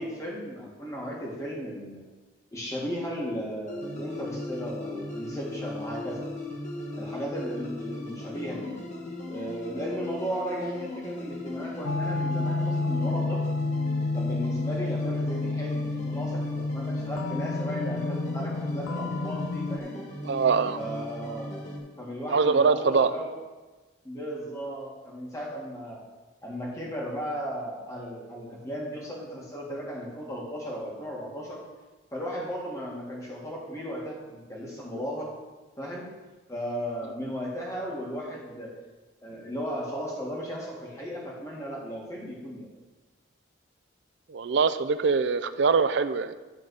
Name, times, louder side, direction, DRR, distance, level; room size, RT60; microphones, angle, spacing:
voice 1, 0.0-2.0 2.5-6.2 7.0-8.8 9.3-13.4 14.1-20.0 20.7-21.5 22.0-23.3 24.0-26.0 26.4-31.6 32.1-35.3 35.8-36.1 36.5-38.7 39.2-42.7, equal, 15° left, -4 dB, 2.0 m, -35 dB
sound 1, 3.7-21.8, left 1 dB, 35° left, 1.7 m, -38 dB
sound 2, 11.8-19.8, left 3 dB, 80° left, 0.4 m, -30 dB
voice 2, 20.3-20.8 22.3-23.1 44.3-46.3, right 5 dB, 60° right, 12 dB, 0.4 m, -23 dB
11.0 x 4.0 x 6.3 m, 1.2 s
head